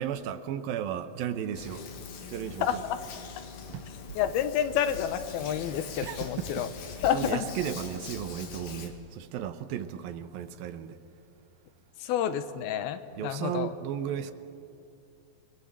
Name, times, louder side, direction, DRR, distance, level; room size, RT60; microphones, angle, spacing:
voice 1, 0.0-1.9 2.3-2.8 3.7-4.2 6.0-11.0 13.1-14.3, right 9 dB, 75° right, 2.7 m, -35 dB
Hands, 1.5-8.9, left 6 dB, 65° left, 3.4 m, -42 dB
voice 2, 4.2-6.7 7.0-7.5 12.0-13.7, left 10 dB, 85° left, 3.0 m, -29 dB
29.0 x 21.5 x 7.5 m
omnidirectional pair, 4.3 m